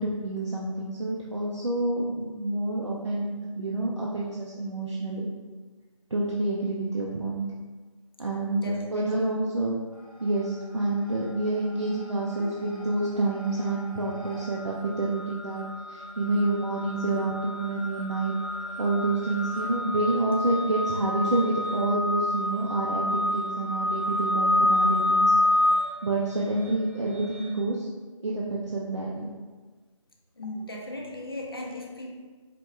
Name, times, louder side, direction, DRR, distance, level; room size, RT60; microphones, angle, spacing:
voice 1, 0.0-5.3 6.1-7.5 8.2-9.8 10.2-18.3 18.8-25.3 26.0-27.9 28.2-29.3, right 2 dB, 60° right, -4 dB, 0.6 m, -28 dB
voice 2, 8.4-9.4 30.4-32.1, left 1 dB, 45° left, 1 dB, 0.6 m, -38 dB
sound 1, 10.0-10.6 10.9-27.5, left 1 dB, 90° right, 1.2 m, -29 dB
4.7 x 2.3 x 3.3 m, 1.4 s
figure-of-eight pair, 170°, 17 cm